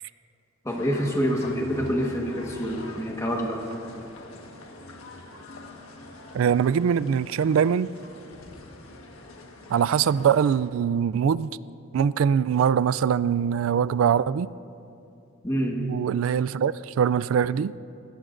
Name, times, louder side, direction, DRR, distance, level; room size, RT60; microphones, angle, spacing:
voice 1, 0.6-3.6 15.4-15.8, equal, 15° left, 0 dB, 1.4 m, -26 dB
sound 1, 0.7-10.6, left 2 dB, 90° left, 1.4 m, -44 dB
voice 2, 6.3-7.9 9.7-11.5 11.9-14.5 15.8-17.7, right 7 dB, 70° right, 18 dB, 0.3 m, -22 dB
22.5 x 17.5 x 2.6 m, 2.7 s
head